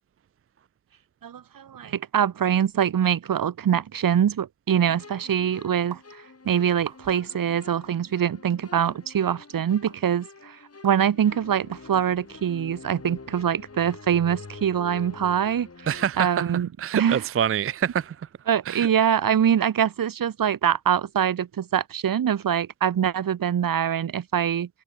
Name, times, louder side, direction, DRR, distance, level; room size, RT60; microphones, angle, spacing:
voice 1, 1.2-6.0 6.4-10.6 10.8-15.7 16.2-17.3 18.5-24.7, right 9 dB, 55° right, 0.8 m, -24 dB
sound 1, 4.7-16.1, left 4 dB, 35° left, 3.5 m, -46 dB
sound 2, 5.9-6.1 6.8-7.3 7.8-8.0 8.9-9.0 9.9-10.0 10.8-10.9 11.7-11.8, right 9 dB, 75° right, 1.2 m, -41 dB
voice 2, 15.9-16.4 16.8-18.2 18.7-18.9, right 8 dB, 35° right, 0.4 m, -26 dB
cardioid pair, 60°, 39 cm